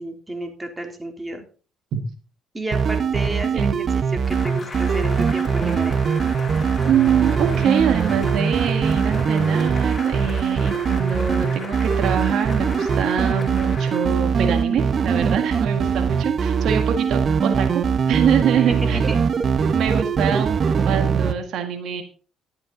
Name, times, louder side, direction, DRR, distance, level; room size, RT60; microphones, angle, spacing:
voice 1, 0.0-1.4 2.5-6.0 18.5-19.2, right 1 dB, 15° right, 4 dB, 3.3 m, -31 dB
sound 1, 2.7-21.3, right 6 dB, 50° right, 1.1 m, -21 dB
Cheering / Applause, 4.2-14.3, left 3 dB, 35° left, 7.7 m, -37 dB
voice 2, 6.9-19.0 19.7-22.0, right 8 dB, 70° right, 5 dB, 1.8 m, -24 dB
13.0 x 11.0 x 4.0 m, 0.37 s
supercardioid pair, 80°, 0 cm